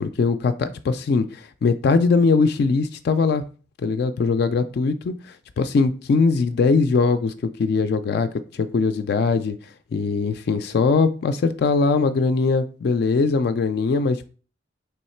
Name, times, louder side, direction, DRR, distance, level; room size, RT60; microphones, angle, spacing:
voice 1, 0.0-3.4 3.8-5.1 5.6-7.3 7.6-9.6 9.9-14.3, left 4 dB, 60° left, 11 dB, 0.3 m, -21 dB
3.4 x 3.1 x 4.3 m, 0.38 s
head